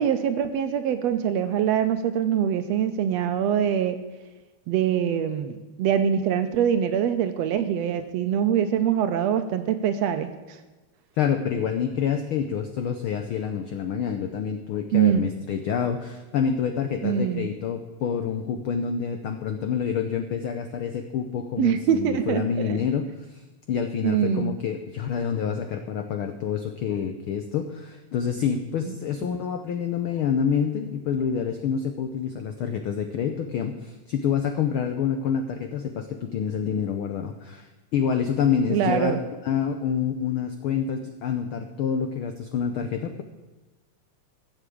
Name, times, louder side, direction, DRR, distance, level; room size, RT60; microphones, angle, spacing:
voice 1, 0.0-4.0 4.7-10.3 14.9-15.2 17.0-17.5 21.6-22.8 24.0-24.5 38.7-39.2, right 9 dB, 75° right, 9 dB, 1.7 m, -23 dB
voice 2, 11.2-23.4 23.7-39.2 39.4-43.2, left 7 dB, 80° left, 8 dB, 1.2 m, -27 dB
14.5 x 7.1 x 8.5 m, 1.1 s
omnidirectional pair, 3.4 m